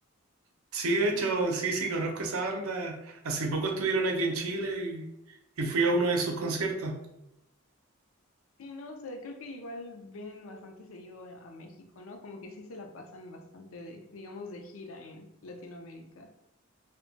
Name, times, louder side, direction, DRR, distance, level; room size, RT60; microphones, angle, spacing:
voice 1, 0.7-5.1 5.6-7.0, right 3 dB, 80° right, 2 dB, 0.6 m, -29 dB
voice 2, 8.6-16.3, left 2 dB, 70° left, 4 dB, 0.4 m, -44 dB
2.2 x 2.2 x 3.8 m, 0.84 s
head